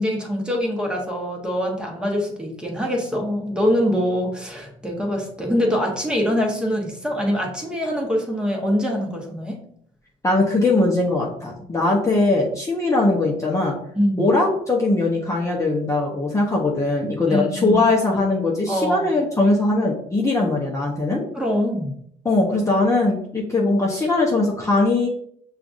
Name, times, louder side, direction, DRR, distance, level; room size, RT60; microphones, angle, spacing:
voice 1, 0.0-9.6 13.9-14.3 17.3-17.8 18.7-19.1 21.3-21.9, equal, 5° right, -1 dB, 1.2 m, -24 dB
voice 2, 10.2-13.7 14.2-21.2 22.2-25.1, left 2 dB, 20° left, -3 dB, 0.8 m, -20 dB
5.6 x 2.5 x 2.6 m, 0.68 s
supercardioid pair, 70°, 15 cm